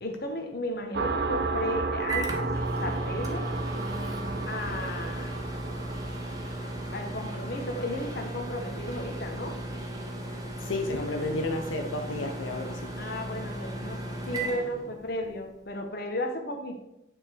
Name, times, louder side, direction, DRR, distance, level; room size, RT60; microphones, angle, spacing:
voice 1, 0.0-2.5 2.8-3.5 4.5-5.3 6.9-9.6 13.0-14.0 14.3-16.8, left 1 dB, 55° left, 4 dB, 1.0 m, -34 dB
sound 1, 0.9-10.2, right 4 dB, 55° right, 0.5 m, -34 dB
Microwave oven, 1.4-15.4, right 1 dB, 20° right, 0.8 m, -36 dB
voice 2, 10.6-12.9, left 2 dB, 85° left, 4 dB, 0.7 m, -31 dB
8.8 x 3.7 x 4.4 m, 0.87 s
head